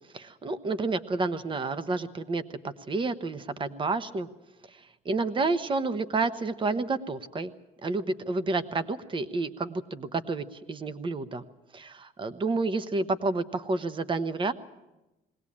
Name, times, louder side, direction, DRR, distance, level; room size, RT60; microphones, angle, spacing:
voice 1, 0.1-4.3 5.0-7.5 7.8-11.4 11.7-14.5, right 3 dB, 30° right, 13 dB, 1.1 m, -30 dB
20.5 x 18.0 x 8.6 m, 1.0 s
cardioid pair, 110°, 17 cm